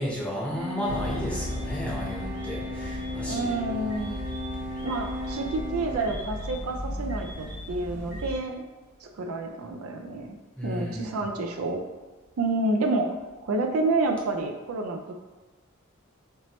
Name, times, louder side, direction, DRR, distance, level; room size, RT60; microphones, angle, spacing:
voice 1, 0.0-3.6 10.6-11.2, equal, 5° left, -5 dB, 0.8 m, -33 dB
sound 1, 0.5-6.1, left 1 dB, 40° right, 0.7 m, -36 dB
sound 2, 0.8-8.4, left 1 dB, 35° left, 0.8 m, -36 dB
voice 2, 3.3-4.2 4.8-8.6 9.0-11.8 12.4-13.2 13.4-15.1, right 2 dB, 70° right, 4 dB, 0.4 m, -29 dB
4.4 x 3.0 x 3.0 m, 1.2 s
head